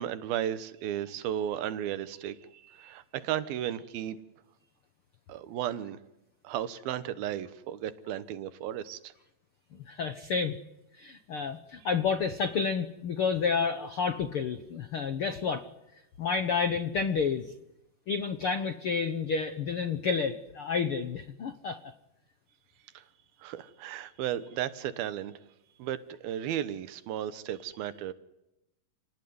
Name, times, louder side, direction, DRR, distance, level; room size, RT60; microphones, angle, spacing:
voice 1, 0.0-4.2 5.3-6.0 6.4-9.1 22.9-23.0 23.4-25.3 25.8-28.1, right 11 dB, 85° right, 14 dB, 3.0 m, -34 dB
voice 2, 9.9-10.6 11.0-15.6 16.2-17.5 18.1-21.8, left 5 dB, 75° left, 10 dB, 1.2 m, -30 dB
28.5 x 19.0 x 9.5 m, 0.91 s
omnidirectional pair, 4.2 m